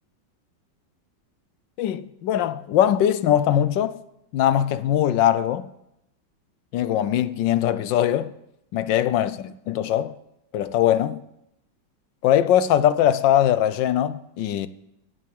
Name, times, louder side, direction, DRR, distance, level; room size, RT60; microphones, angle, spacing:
voice 1, 1.8-4.0 4.3-5.7 6.7-8.3 8.7-9.3 9.7-10.1 10.5-11.2 12.2-14.7, left 11 dB, 75° left, 1.4 m, -21 dB
10.5 x 9.1 x 8.8 m
omnidirectional pair, 2.0 m